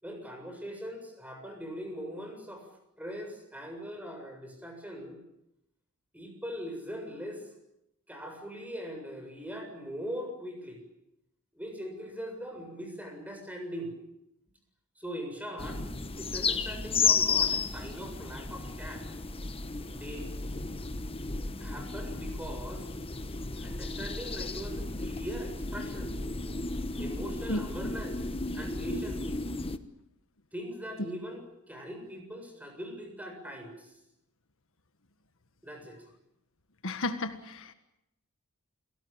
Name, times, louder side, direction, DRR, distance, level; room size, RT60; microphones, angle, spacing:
voice 1, 0.0-2.6 3.0-5.2 6.1-7.5 8.1-10.8 11.5-13.9 15.0-15.8 16.1-19.0 19.9-20.3 21.6-22.9 23.6-26.2 27.0-28.2 28.5-29.4 30.5-33.9 35.6-36.0, equal, 5° right, 4 dB, 7.3 m, -41 dB
sound 1, 15.6-29.8, left 4 dB, 25° left, 1.2 m, -33 dB
voice 2, 36.8-37.7, left 2 dB, 65° left, 9 dB, 1.7 m, -33 dB
29.5 x 19.0 x 9.0 m, 0.82 s
head